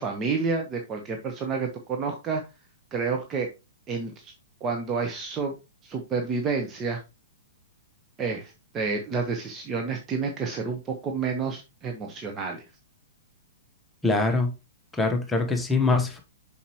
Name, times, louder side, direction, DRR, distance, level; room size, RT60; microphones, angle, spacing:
voice 1, 0.0-2.4 2.9-3.5 3.9-4.3 4.6-5.5 5.8-7.0 8.2-12.6, right 4 dB, 20° right, 1.2 m, -29 dB
voice 2, 14.0-14.5 15.0-16.2, left 3 dB, 5° left, 1.2 m, -23 dB
7.0 x 6.0 x 3.1 m
figure-of-eight pair, 110°, 0 cm